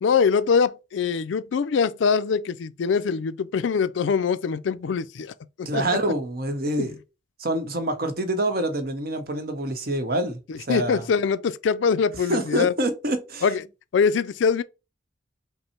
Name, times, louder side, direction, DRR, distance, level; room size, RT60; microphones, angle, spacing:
voice 1, 0.0-5.3 5.6-5.8 6.8-6.9 10.5-12.7 13.4-13.6 13.9-14.6, left 6 dB, 70° left, 0.4 m, -23 dB
voice 2, 5.6-7.0 7.4-10.4 10.7-11.1 12.3-13.4, right 1 dB, 50° right, 0.8 m, -26 dB
5.4 x 2.0 x 4.3 m
head